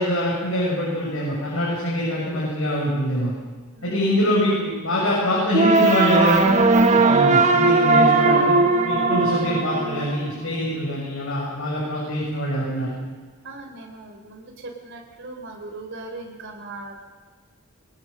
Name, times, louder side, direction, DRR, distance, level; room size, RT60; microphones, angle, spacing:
voice 1, 0.0-3.3 3.8-6.5 7.0-8.5 8.8-12.9, equal, 65° left, -5 dB, 6.5 m, -24 dB
sound 1, 5.5-10.6, right 3 dB, 35° right, 1.5 m, -18 dB
voice 2, 13.4-17.0, right 2 dB, 60° right, 1 dB, 3.9 m, -39 dB
22.0 x 20.5 x 6.6 m, 1.4 s
head